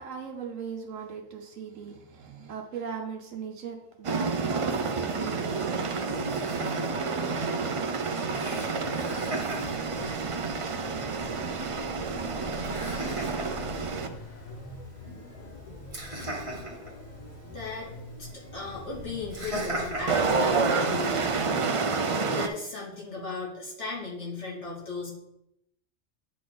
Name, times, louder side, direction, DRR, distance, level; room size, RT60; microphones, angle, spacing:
voice 1, 0.0-6.5, right 6 dB, 80° right, 4 dB, 1.2 m, -38 dB
sound 1, 4.0-14.1 20.1-22.5, right 4 dB, 55° right, 0.3 m, -29 dB
Laughter, 5.3-21.3, right 1 dB, 25° right, 1.6 m, -41 dB
sound 2, 8.3-20.9, left 1 dB, 40° left, 0.9 m, -44 dB
voice 2, 17.5-17.9 18.2-21.7 22.0-25.1, left 3 dB, 65° left, -4 dB, 2.5 m, -36 dB
8.6 x 5.2 x 3.9 m, 0.82 s
omnidirectional pair, 1.3 m